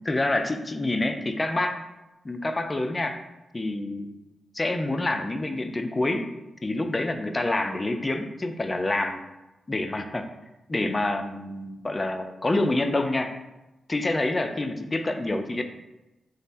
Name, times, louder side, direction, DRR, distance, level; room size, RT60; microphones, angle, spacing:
voice 1, 0.0-1.8 2.2-3.2 3.5-4.1 4.5-6.3 6.6-9.2 9.7-10.3 10.7-13.3 13.9-15.6, left 2 dB, 30° left, 6 dB, 0.3 m, -27 dB
3.2 x 2.0 x 2.6 m, 0.99 s
supercardioid pair, 50°, 0 cm